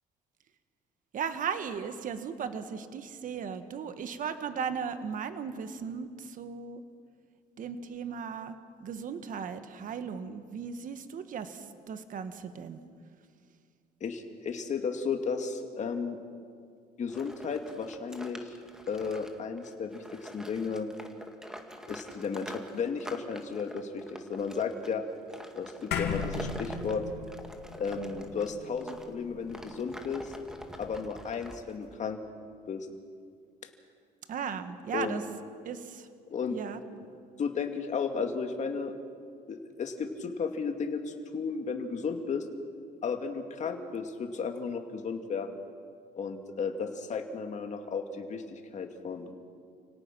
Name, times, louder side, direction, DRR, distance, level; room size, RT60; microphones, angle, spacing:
voice 1, 1.1-6.8 7.6-12.8 34.3-35.2 35.6-36.1 36.5-36.8, right 6 dB, 50° right, 10 dB, 1.4 m, -37 dB
voice 2, 14.0-16.2 17.0-18.6 18.9-20.9 21.9-25.0 25.5-27.0 27.8-30.3 30.8-32.2 32.7-32.9 34.9-35.2 36.3-36.6 37.4-38.9 39.5-42.5 43.0-45.6 46.1-49.3, left 5 dB, 45° left, 5 dB, 2.3 m, -34 dB
sound 1, 17.1-29.1 29.5-31.9, equal, 5° right, 2.0 m, -46 dB
sound 2, 25.9-30.5, left 6 dB, 75° left, 2.7 m, -37 dB
29.5 x 18.0 x 6.1 m, 2.2 s
cardioid pair, 110°, 17 cm